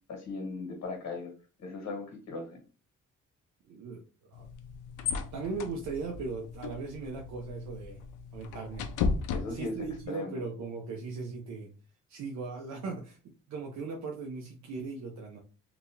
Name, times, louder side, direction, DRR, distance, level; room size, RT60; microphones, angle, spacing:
voice 1, 0.1-1.3 1.6-2.6 9.3-10.4, left 3 dB, 65° left, 1 dB, 1.5 m, -38 dB
voice 2, 3.7-4.0 4.3-4.5 5.3-8.0 8.3-8.9 9.4-11.7 12.1-15.4, right 4 dB, 65° right, 0 dB, 0.7 m, -38 dB
sound 1, 4.3-10.1, left 5 dB, 85° left, 0.5 m, -36 dB
2.9 x 2.8 x 2.4 m, 0.35 s
cardioid pair, 90°, 30 cm